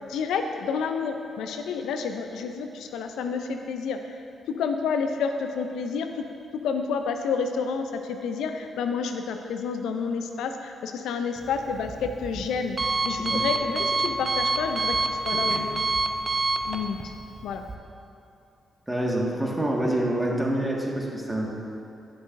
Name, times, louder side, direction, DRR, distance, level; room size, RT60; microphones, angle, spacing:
voice 1, 0.0-4.2 4.5-6.3 6.5-12.8 13.0-15.9 16.7-17.0 17.4-17.6, left 5 dB, 80° left, 6 dB, 0.4 m, -29 dB
Alarm, 11.4-17.8, right 3 dB, 35° right, 0.7 m, -28 dB
voice 2, 18.9-21.5, right 1 dB, 10° right, -2 dB, 1.6 m, -27 dB
11.5 x 7.3 x 2.5 m, 2.8 s
supercardioid pair, 45°, 0 cm